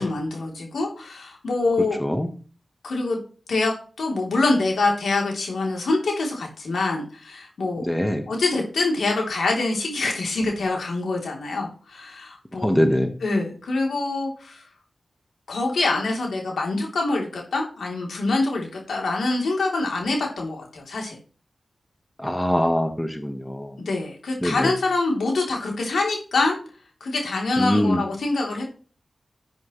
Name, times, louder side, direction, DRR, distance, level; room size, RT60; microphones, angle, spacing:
voice 1, 0.0-2.0 2.8-3.2 3.5-3.7 4.0-7.9 8.3-12.7 13.2-14.6 15.5-21.2 23.8-26.6 27.0-28.7, left 3 dB, 90° left, 0 dB, 3.4 m, -25 dB
voice 2, 7.8-8.3 12.6-13.1 22.2-23.8 24.4-24.7 27.6-28.0, equal, 10° left, 6 dB, 1.4 m, -23 dB
11.5 x 8.0 x 3.2 m, 0.38 s
cardioid pair, 50°, 0 cm